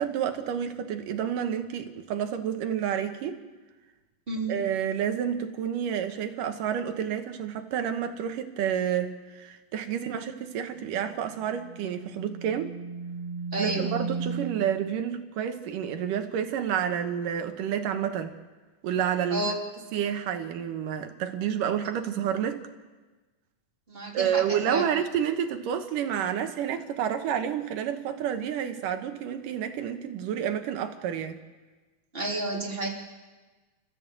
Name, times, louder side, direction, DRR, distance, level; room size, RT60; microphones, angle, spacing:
voice 1, 0.0-3.4 4.5-12.7 13.6-18.3 18.8-19.5 19.9-22.6 24.1-31.4, right 9 dB, 85° right, 7 dB, 2.9 m, -29 dB
voice 2, 4.3-4.7 9.9-10.2 13.5-13.9 19.3-19.6 23.9-24.9 32.1-32.9, right 2 dB, 15° right, -2 dB, 3.6 m, -31 dB
sound 1, 10.8-14.7, right 4 dB, 20° left, 5.0 m, -36 dB
29.0 x 14.5 x 7.8 m, 1.3 s
omnidirectional pair, 3.7 m